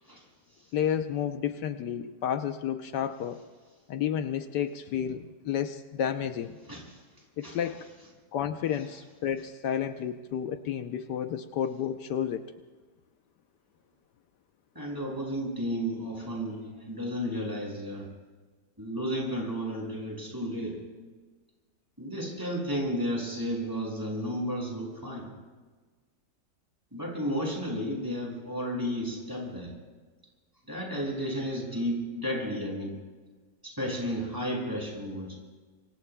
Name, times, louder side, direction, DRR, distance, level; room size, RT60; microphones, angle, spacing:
voice 1, 0.7-3.4 3.9-6.6 7.4-7.9 8.3-12.4, left 9 dB, 80° left, 8 dB, 1.3 m, -31 dB
voice 2, 14.7-18.1 18.8-20.8 22.0-25.3 26.9-29.7 30.7-32.9 33.6-35.3, equal, 10° right, -2 dB, 5.8 m, -32 dB
25.5 x 25.0 x 2.2 m, 1.4 s
omnidirectional pair, 1.8 m